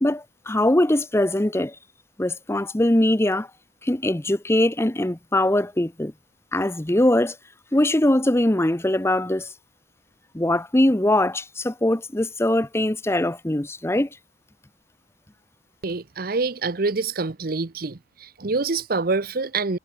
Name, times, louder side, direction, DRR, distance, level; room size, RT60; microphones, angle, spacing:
voice 1, 0.0-1.7 2.2-3.5 3.8-6.1 6.5-7.4 7.7-9.5 10.3-14.1, left 1 dB, 15° left, 0.8 m, -21 dB
voice 2, 15.8-19.8, right 3 dB, 50° right, 0.8 m, -26 dB
head